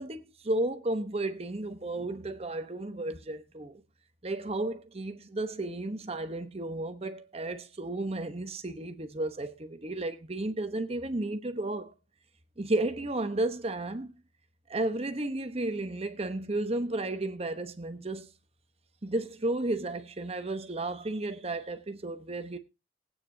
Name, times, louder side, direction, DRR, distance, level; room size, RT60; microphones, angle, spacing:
voice 1, 0.0-3.8 4.2-11.9 12.6-14.2 14.7-18.3 19.0-22.6, right 2 dB, 35° right, 0.9 m, -33 dB
19.5 x 9.0 x 2.7 m
head